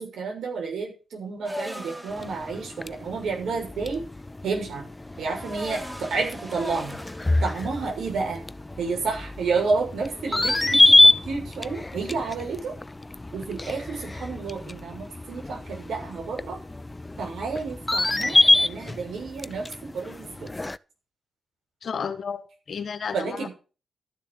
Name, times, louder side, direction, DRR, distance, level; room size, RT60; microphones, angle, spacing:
voice 1, 0.0-4.0 4.4-4.8 5.2-7.0 7.4-8.4 8.8-12.7 13.3-16.6 17.2-20.5 23.1-23.5, right 4 dB, 75° right, 6.7 m, -30 dB
sound 1, 1.4-9.2, equal, 10° right, 3.3 m, -41 dB
sound 2, 2.1-20.8, left 2 dB, 20° left, 0.5 m, -26 dB
voice 2, 21.8-23.5, left 6 dB, 65° left, 1.7 m, -32 dB
13.0 x 6.9 x 7.3 m
supercardioid pair, 55°, 0 cm